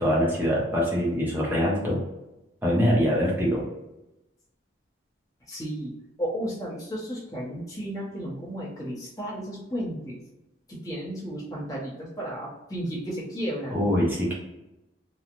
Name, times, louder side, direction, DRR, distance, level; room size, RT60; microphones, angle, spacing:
voice 1, 0.0-2.0 2.6-3.6 13.7-14.3, equal, 10° right, -5 dB, 0.8 m, -23 dB
voice 2, 5.5-10.2 10.7-13.8, equal, 20° left, -6 dB, 0.9 m, -33 dB
3.1 x 2.3 x 2.5 m, 0.94 s
head